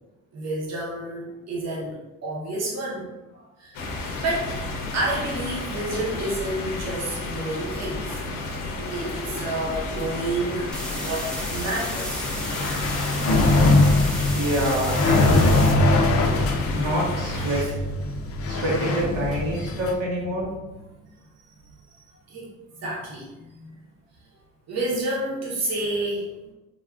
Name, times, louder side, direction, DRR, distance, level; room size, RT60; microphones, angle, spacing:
voice 1, 0.3-3.8 4.1-4.5 4.9-8.2 8.9-12.3 17.4-17.7 18.4-18.6 21.9-22.0 22.3-22.5 22.8-23.3 23.6-23.7 24.7-26.5, right 1 dB, 55° right, -5 dB, 0.9 m, -30 dB
sound 1, 3.7-17.6, left 3 dB, 90° left, 0.6 m, -32 dB
sound 2, 10.7-15.7, equal, 5° left, 0.6 m, -34 dB
sound 3, 12.2-19.9, left 2 dB, 45° left, 0.4 m, -22 dB
voice 2, 14.3-15.5 16.7-17.7 18.5-20.5, equal, 90° right, -5 dB, 1.1 m, -26 dB
3.5 x 2.4 x 2.4 m, 1.0 s
cardioid pair, 85°, 32 cm